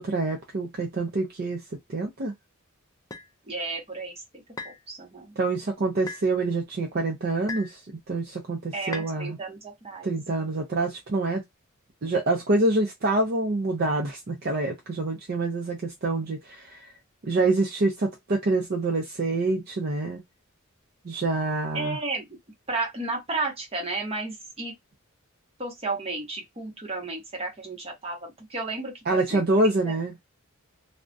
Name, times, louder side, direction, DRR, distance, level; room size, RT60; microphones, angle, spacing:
voice 1, 0.0-1.6 1.9-2.3 5.4-7.8 8.1-9.4 10.0-11.4 12.0-16.9 17.2-20.2 21.0-22.0 29.1-30.1, right 2 dB, 45° right, 0.5 m, -26 dB
sound 1, 3.1-3.3 4.6-4.8 6.1-6.3 7.5-7.8 8.9-9.1, left 4 dB, 15° left, 0.4 m, -37 dB
voice 2, 3.5-5.3 8.7-10.1 21.7-22.4 22.7-24.7 25.6-30.0, right 3 dB, 30° right, 0.9 m, -33 dB
2.3 x 2.1 x 2.5 m
head